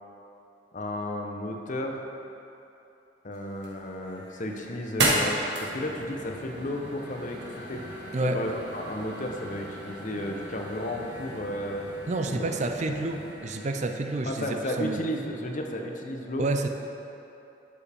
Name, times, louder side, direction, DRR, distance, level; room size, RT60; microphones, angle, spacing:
voice 1, 0.7-2.0 3.2-7.8 8.2-11.9 12.3-12.5 12.9-13.0 14.2-16.5, left 1 dB, 45° left, 2 dB, 0.8 m, -33 dB
sound 1, 3.3-14.3, right 2 dB, 90° right, 1.4 m, -35 dB
sound 2, 5.7-13.3, left 1 dB, 80° left, 0.9 m, -45 dB
voice 2, 12.1-15.0 16.4-16.7, right 2 dB, 45° right, 6 dB, 0.5 m, -29 dB
11.0 x 7.3 x 3.5 m, 2.9 s
head